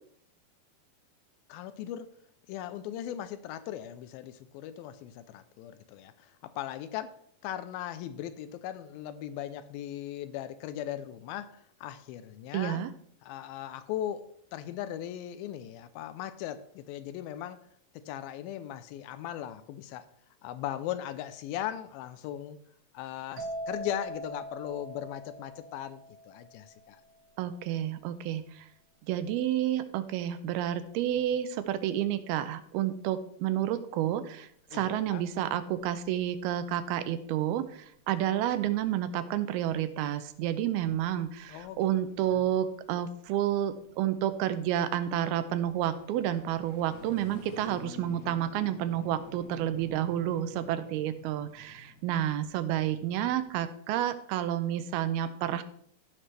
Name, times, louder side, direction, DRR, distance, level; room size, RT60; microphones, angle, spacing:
voice 1, 1.5-2.1 2.5-7.1 7.4-12.9 13.2-14.3 14.5-17.6 17.9-20.1 20.4-22.6 22.9-27.0 34.7-35.2 41.5-41.8 42.3-42.5, left 11 dB, 80° left, 12 dB, 2.3 m, -38 dB
voice 2, 12.5-12.9 27.4-28.6 29.1-37.6 38.1-55.6, right 11 dB, 85° right, 11 dB, 2.6 m, -30 dB
sound 1, 23.4-27.0, right 1 dB, 60° right, 2.1 m, -41 dB
sound 2, 34.5-53.4, left 3 dB, 50° left, 2.1 m, -53 dB
15.0 x 5.9 x 3.3 m, 0.66 s
omnidirectional pair, 4.4 m